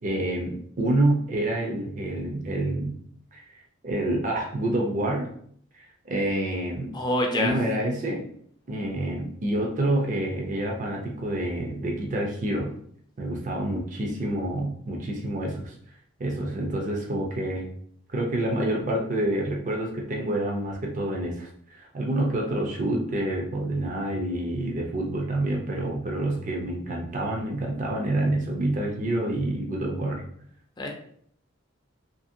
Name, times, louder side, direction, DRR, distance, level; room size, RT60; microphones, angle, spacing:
voice 1, 0.0-3.0 3.3-3.4 3.8-5.3 5.7-6.9 7.3-8.2 8.7-12.7 13.2-15.7 16.2-17.7 18.1-30.2, right 1 dB, 40° right, 0 dB, 0.5 m, -27 dB
voice 2, 6.9-7.5 30.8-30.9, left 1 dB, 20° left, 1 dB, 0.4 m, -25 dB
2.8 x 2.7 x 2.6 m, 0.63 s
head